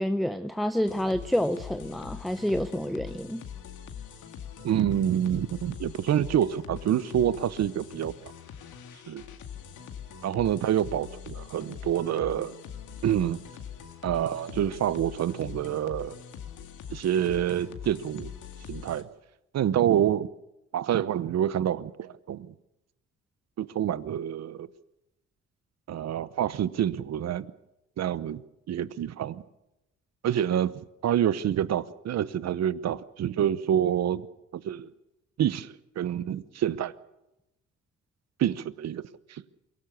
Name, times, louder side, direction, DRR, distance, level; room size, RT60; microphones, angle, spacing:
voice 1, 0.0-3.4, equal, ahead, 0.7 m, -28 dB
sound 1, 0.9-19.0, left 8 dB, 80° left, 2.1 m, -43 dB
voice 2, 4.6-8.3 9.1-9.2 10.2-12.5 13.0-13.4 14.0-16.2 16.9-18.3 18.7-19.1 19.5-20.3 20.7-22.5 23.6-24.7 25.9-27.5 28.0-28.4 28.7-29.4 30.2-34.3 34.5-34.9 35.4-36.9 38.4-39.0 39.3-39.4, right 10 dB, 60° right, 0.9 m, -27 dB
23.0 x 17.0 x 6.9 m
cardioid pair, 90°, 30 cm